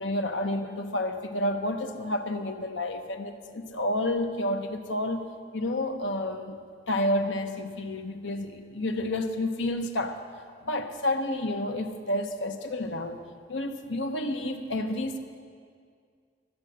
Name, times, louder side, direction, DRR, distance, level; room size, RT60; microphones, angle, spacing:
voice 1, 0.0-5.2 5.5-6.6 6.9-10.2 10.6-13.2 13.5-15.2, left 1 dB, 80° left, 5 dB, 0.9 m, -30 dB
13.0 x 7.5 x 7.9 m, 2.1 s
head